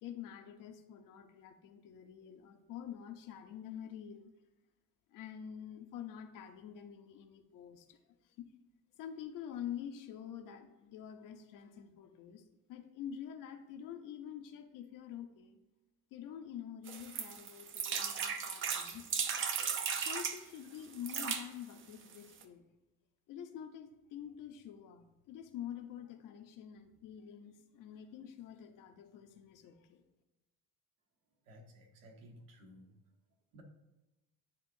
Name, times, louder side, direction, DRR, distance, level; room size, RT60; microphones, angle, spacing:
voice 1, 0.0-4.3 5.1-8.0 8.4-8.5 9.0-12.4 12.7-15.6 16.1-19.1 20.0-22.6 23.3-30.0, left 9 dB, 60° left, 7 dB, 0.7 m, -47 dB
sound 1, 16.9-20.4 20.9-21.4 22.1-22.2 22.4-22.5, right 7 dB, 35° right, 0.5 m, -36 dB
voice 2, 31.5-33.0 33.5-33.6, equal, 65° right, 2 dB, 1.2 m, -56 dB
9.9 x 3.6 x 2.6 m, 1.0 s
cardioid pair, 140°, 36 cm